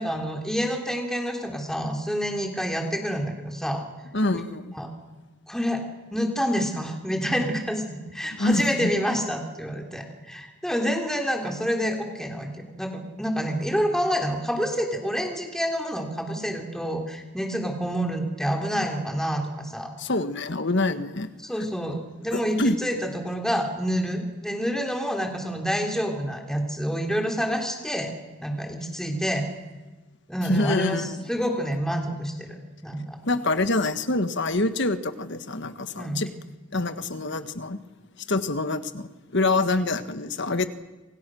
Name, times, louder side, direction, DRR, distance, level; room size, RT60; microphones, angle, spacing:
voice 1, 0.0-3.8 4.7-4.9 5.5-5.8 6.1-19.9 21.4-28.1 28.4-29.5 30.3-33.2 36.0-36.2, equal, ahead, 2 dB, 3.3 m, -28 dB
voice 2, 4.1-4.6 8.4-8.9 20.0-21.3 22.3-22.7 30.4-31.2 33.2-36.3 36.7-37.8 38.3-40.7, left 2 dB, 55° left, 10 dB, 1.4 m, -26 dB
28.0 x 26.0 x 6.3 m, 1.2 s
head